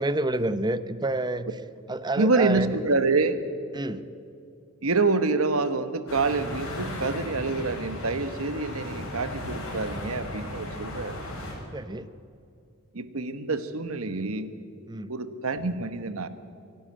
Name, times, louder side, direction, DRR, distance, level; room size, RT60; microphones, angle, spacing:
voice 1, 0.0-1.5 1.9-2.7 3.7-4.1 11.7-12.1 14.9-15.1, right 2 dB, 20° right, 13 dB, 0.7 m, -28 dB
voice 2, 2.2-3.4 4.8-11.2 12.9-14.5 15.1-16.3, right 3 dB, 75° right, 11 dB, 1.2 m, -26 dB
sound 1, 6.1-11.5, left 1 dB, 65° left, 6.2 m, -36 dB
25.0 x 11.5 x 8.9 m, 2.4 s
head